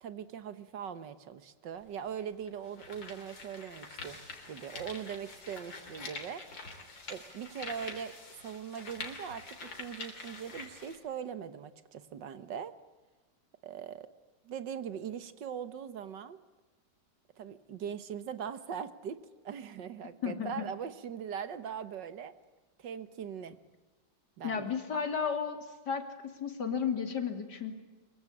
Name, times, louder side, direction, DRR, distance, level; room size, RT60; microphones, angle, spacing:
voice 1, 0.0-6.4 7.1-8.1 8.4-12.7 13.6-14.1 14.4-16.4 17.4-19.2 19.4-22.3 22.8-23.6 24.4-24.7, right 8 dB, 75° right, 12 dB, 1.9 m, -41 dB
sound 1, 1.8-1.9 2.5-11.0, left 3 dB, 85° left, 4.3 m, -46 dB
voice 2, 20.2-20.7 24.4-27.7, left 6 dB, 65° left, 6 dB, 3.2 m, -33 dB
24.5 x 23.0 x 8.6 m, 1.2 s
omnidirectional pair, 2.0 m